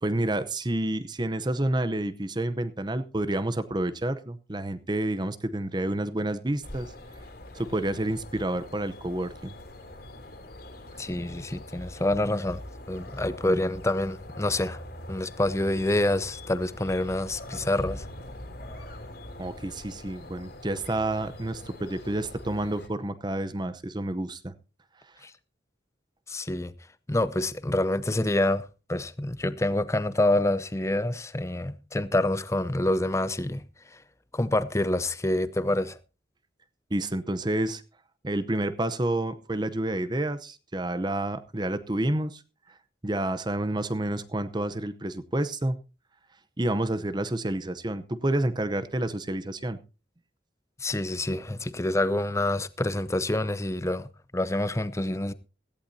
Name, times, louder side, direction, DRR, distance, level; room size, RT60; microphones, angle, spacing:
voice 1, 0.0-6.9 7.5-9.5 19.4-24.5 36.9-37.8 38.2-42.4 42.7-42.8 43.0-45.8 46.6-49.8, right 1 dB, 25° right, 0.8 m, -29 dB
sound 1, 6.6-22.9, left 1 dB, 55° left, 3.2 m, -43 dB
voice 2, 11.0-12.6 12.9-14.8 15.1-18.0 25.2-25.3 26.3-26.7 27.1-33.6 33.9-34.0 34.3-36.0 50.8-55.3, left 1 dB, 15° left, 0.6 m, -27 dB
17.0 x 14.5 x 2.7 m
head